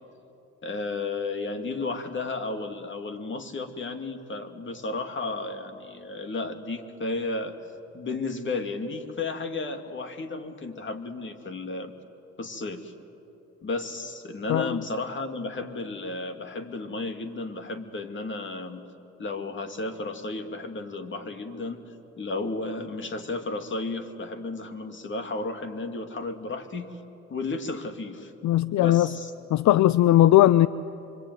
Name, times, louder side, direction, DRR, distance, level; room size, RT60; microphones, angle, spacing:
voice 1, 0.6-7.6 7.9-11.9 12.4-12.9 13.6-18.8 19.2-27.0 27.3-28.3 28.8-29.3, left 3 dB, 40° left, 6 dB, 2.5 m, -33 dB
voice 2, 28.4-29.1 29.5-30.7, left 14 dB, 70° left, 17 dB, 0.6 m, -18 dB
25.5 x 25.0 x 9.4 m, 2.9 s
cardioid pair, 90°, 30 cm